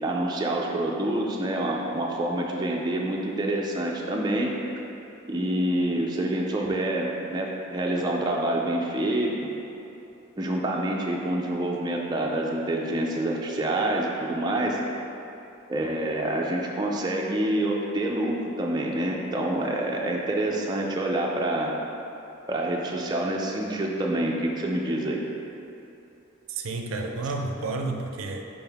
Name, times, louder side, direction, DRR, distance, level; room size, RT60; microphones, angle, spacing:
voice 1, 0.0-4.5 5.3-9.5 10.4-14.8 15.7-21.7 22.5-25.2, right 1 dB, 20° right, -2 dB, 0.4 m, -27 dB
voice 2, 26.5-28.5, right 3 dB, 80° right, 3 dB, 0.5 m, -31 dB
5.4 x 5.3 x 3.5 m, 2.9 s
head